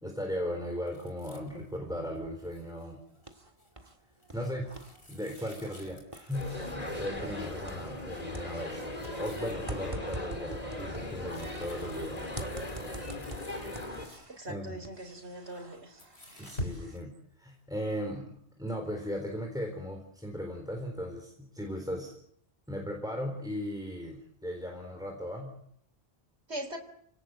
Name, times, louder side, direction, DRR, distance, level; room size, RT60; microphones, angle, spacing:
voice 1, 0.0-3.0 4.3-4.7 5.1-8.8 9.1-12.2 14.5-14.8 16.4-22.1 22.7-25.5, equal, 5° right, 2 dB, 4.0 m, -37 dB
sound 1, 0.9-6.9 7.5-7.8 8.1-8.2 8.6-9.6 10.1-14.5 15.4-17.0, left 1 dB, 70° left, 4.7 m, -48 dB
sound 2, 2.8-4.0 4.2-8.1 8.3-11.9 12.4-14.5 14.8-17.0, right 2 dB, 30° right, 1.9 m, -46 dB
sound 3, 6.3-14.1, left 1 dB, 35° left, 3.8 m, -38 dB
voice 2, 14.4-16.0 26.5-26.8, right 1 dB, 80° right, 4 dB, 4.0 m, -40 dB
29.5 x 18.5 x 7.9 m, 0.71 s
omnidirectional pair, 1.1 m